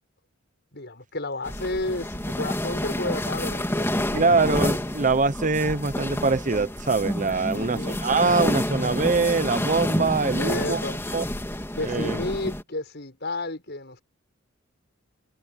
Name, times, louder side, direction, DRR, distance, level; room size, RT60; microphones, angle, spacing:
voice 1, 0.7-4.5 7.5-8.0 10.4-11.0 11.7-14.0, left 2 dB, 55° left, 6.8 m, -32 dB
sound 1, 1.4-12.6, left 1 dB, 10° left, 3.1 m, -29 dB
voice 2, 4.1-10.8 11.1-11.2 11.8-12.2, right 4 dB, 40° right, 0.8 m, -23 dB
head